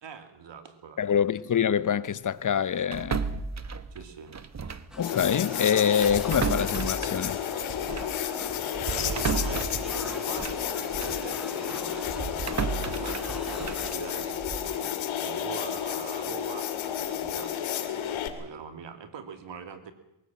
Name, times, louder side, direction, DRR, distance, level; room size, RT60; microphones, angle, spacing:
voice 1, 0.0-1.2 3.9-4.3 8.8-12.3 13.0-19.9, right 6 dB, 65° right, 2.8 m, -43 dB
voice 2, 1.0-3.3 5.0-7.4, left 8 dB, 40° left, 0.9 m, -25 dB
sound 1, 2.9-5.0 5.2-5.4 6.0-11.3 11.7-14.8, right 5 dB, 35° right, 1.3 m, -34 dB
sound 2, 4.9-13.9, equal, ahead, 5.0 m, -43 dB
sound 3, 5.0-18.3, left 10 dB, 80° left, 2.3 m, -32 dB
23.0 x 15.5 x 7.6 m
cardioid pair, 70°, 47 cm